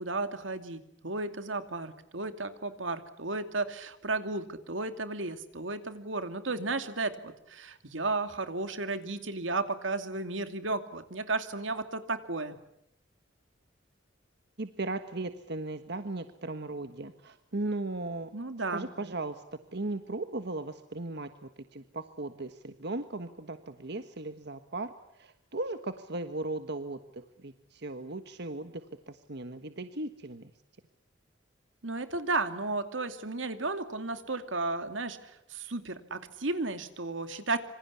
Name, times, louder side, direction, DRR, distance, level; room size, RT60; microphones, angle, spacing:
voice 1, 0.0-12.6 18.3-18.9 31.8-37.6, right 3 dB, 85° right, 9 dB, 2.5 m, -34 dB
voice 2, 14.6-18.3 18.7-30.5, right 2 dB, 60° right, 9 dB, 1.4 m, -37 dB
26.5 x 25.5 x 8.5 m, 0.75 s
head